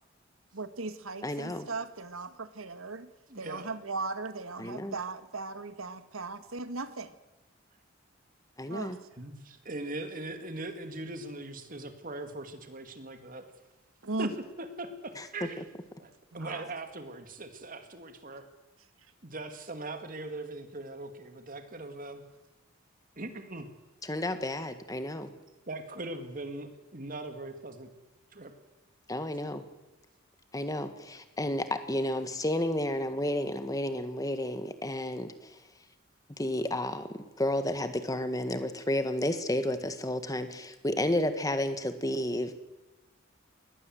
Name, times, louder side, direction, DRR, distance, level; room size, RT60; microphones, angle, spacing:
voice 1, 0.5-3.1 3.3-7.1 8.7-9.0 14.0-14.3 16.3-16.7, right 3 dB, 85° right, 11 dB, 1.6 m, -37 dB
voice 2, 1.2-1.7 4.6-4.9 8.6-9.0 15.2-15.3 24.0-25.3 29.1-29.6 30.5-35.5 36.4-42.5, left 1 dB, 15° left, 9 dB, 1.5 m, -31 dB
voice 3, 3.3-3.8 9.2-13.4 14.2-14.3 14.6-15.6 16.0-18.4 19.2-22.2 23.2-23.7 25.7-27.9 28.3-28.5, right 2 dB, 40° right, 7 dB, 2.3 m, -40 dB
22.0 x 18.5 x 7.8 m, 1.1 s
head